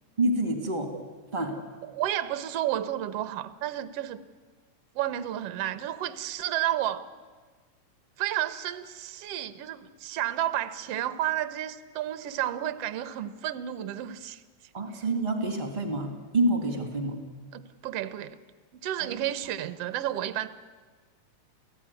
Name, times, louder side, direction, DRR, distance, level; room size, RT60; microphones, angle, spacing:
voice 1, 0.2-0.9 1.3-1.6 14.7-17.2 19.0-19.2, right 1 dB, 15° right, 5 dB, 2.3 m, -27 dB
voice 2, 1.8-4.2 5.0-7.1 8.2-14.4 17.5-18.4 18.7-20.5, right 12 dB, 60° right, 13 dB, 1.8 m, -31 dB
29.0 x 16.5 x 9.7 m, 1.4 s
omnidirectional pair, 3.6 m